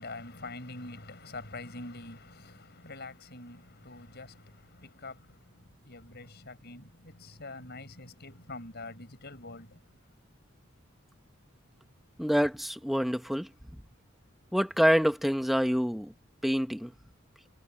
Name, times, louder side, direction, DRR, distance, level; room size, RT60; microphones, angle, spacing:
voice 1, 0.0-10.0, left 2 dB, 55° left, 5.6 m, -45 dB
voice 2, 12.2-13.5 14.5-16.1 16.4-16.9, equal, ahead, 1.5 m, -26 dB
head